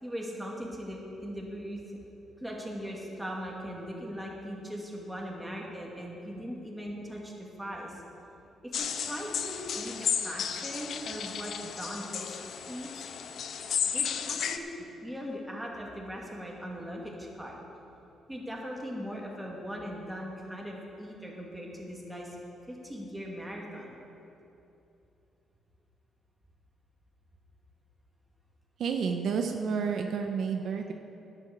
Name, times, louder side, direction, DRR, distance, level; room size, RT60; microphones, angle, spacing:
voice 1, 0.0-1.8 2.4-8.0 8.8-12.4 12.7-13.1 13.9-17.6 18.3-22.4 22.7-24.0, equal, 5° right, -2 dB, 2.5 m, -39 dB
sound 1, 8.7-14.6, left 7 dB, 65° left, 0.6 m, -33 dB
voice 2, 28.8-30.9, right 6 dB, 65° right, 4 dB, 0.7 m, -30 dB
10.5 x 8.0 x 7.4 m, 2.9 s
cardioid pair, 90°, 0 cm